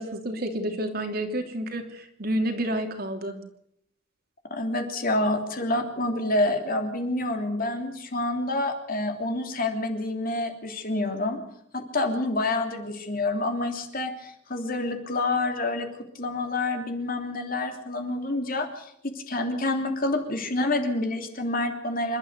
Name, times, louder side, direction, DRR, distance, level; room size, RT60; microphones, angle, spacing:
voice 1, 0.0-3.4, right 1 dB, 50° right, 4 dB, 3.1 m, -29 dB
voice 2, 4.5-11.4 11.7-15.9 16.1-22.2, left 2 dB, 50° left, 5 dB, 3.2 m, -28 dB
27.5 x 12.5 x 8.2 m, 0.71 s
head